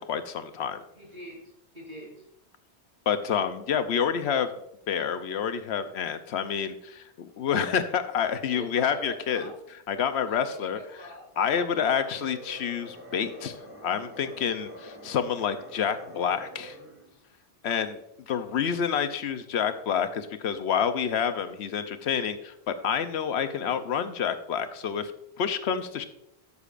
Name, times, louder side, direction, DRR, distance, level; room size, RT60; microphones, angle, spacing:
voice 1, 0.0-0.8 3.1-4.5 4.9-9.5 9.9-10.8 11.4-13.6 13.8-16.8 17.6-17.9 18.3-25.1 25.4-26.1, left 7 dB, 80° left, 9 dB, 0.9 m, -28 dB
voice 2, 0.9-1.4 1.7-2.3 8.5-9.6 10.3-11.3 11.5-11.7 12.0-12.3, equal, 50° right, -4 dB, 4.1 m, -44 dB
sound 1, 11.9-17.2, right 1 dB, 15° right, 1.4 m, -46 dB
13.0 x 6.8 x 2.5 m, 0.80 s
omnidirectional pair, 1.1 m